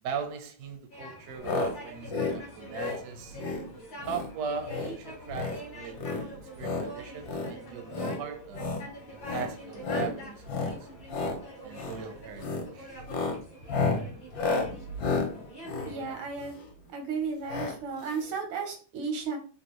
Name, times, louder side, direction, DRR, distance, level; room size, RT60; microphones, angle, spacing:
voice 1, 0.0-3.4 4.1-8.6 9.3-10.9 11.6-12.4 12.7-13.0, right 6 dB, 70° right, 0.9 m, -39 dB
sound 1, 0.9-16.1, right 1 dB, 40° left, 0.7 m, -45 dB
sound 2, 1.4-1.7 2.0-2.4 2.7-3.0 3.4-3.6 4.0-4.3 4.6-4.9 5.2-5.6 6.0-6.9 7.2-7.5 7.9-8.2 8.5-8.8 9.2-9.5 9.8-10.1 10.4-10.8 11.0-11.4 11.7-12.0 12.4-12.7 13.0-16.7 17.5-17.7 18.0-18.1 18.3-18.4, left 4 dB, 65° left, 1.4 m, -31 dB
voice 2, 15.8-16.5 16.9-19.4, right 5 dB, 85° right, 1.7 m, -34 dB
3.7 x 2.3 x 2.9 m
omnidirectional pair, 2.2 m